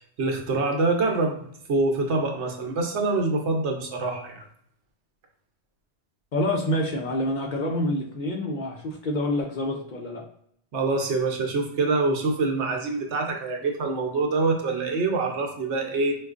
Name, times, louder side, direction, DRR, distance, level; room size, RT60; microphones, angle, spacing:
voice 1, 0.2-4.5 10.7-16.1, right 3 dB, 85° right, 2 dB, 1.0 m, -25 dB
voice 2, 6.3-10.2, left 1 dB, 55° left, 1 dB, 0.6 m, -27 dB
4.6 x 2.4 x 2.4 m, 0.68 s
omnidirectional pair, 1.1 m